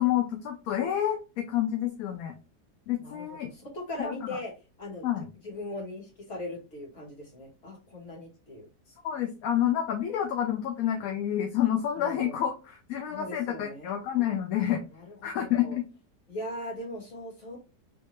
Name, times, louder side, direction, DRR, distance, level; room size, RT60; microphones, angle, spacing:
voice 1, 0.0-2.3 2.9-3.5 4.0-4.4 5.0-5.3 9.0-14.8 15.2-15.9, left 11 dB, 70° left, 4 dB, 0.9 m, -28 dB
voice 2, 3.0-4.5 4.8-5.1 5.4-8.7 12.0-12.4 13.1-14.0 14.9-15.8 16.3-17.6, left 1 dB, 35° left, -3 dB, 1.8 m, -39 dB
3.5 x 2.8 x 3.0 m, 0.31 s
omnidirectional pair, 1.8 m